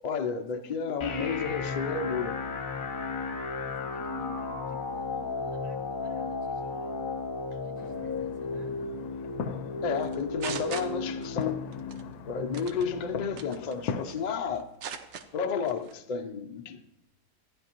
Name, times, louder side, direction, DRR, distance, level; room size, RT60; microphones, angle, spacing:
voice 1, 0.0-2.3 9.8-11.7 12.3-14.7 15.3-16.8, left 6 dB, 70° left, 0.4 m, -32 dB
voice 2, 0.5-1.6 3.8-6.9 7.6-9.0, left 2 dB, 30° right, 1.2 m, -52 dB
sound 1, 1.0-15.0, left 4 dB, 45° left, 0.8 m, -35 dB
sound 2, 7.8-14.0, left 6 dB, 85° left, 1.1 m, -40 dB
sound 3, 10.0-11.4 11.7-12.0 12.5-12.9 13.4-14.2 14.6-15.3 15.7-15.9, right 7 dB, 60° right, 0.9 m, -39 dB
14.5 x 9.5 x 2.9 m
omnidirectional pair, 1.6 m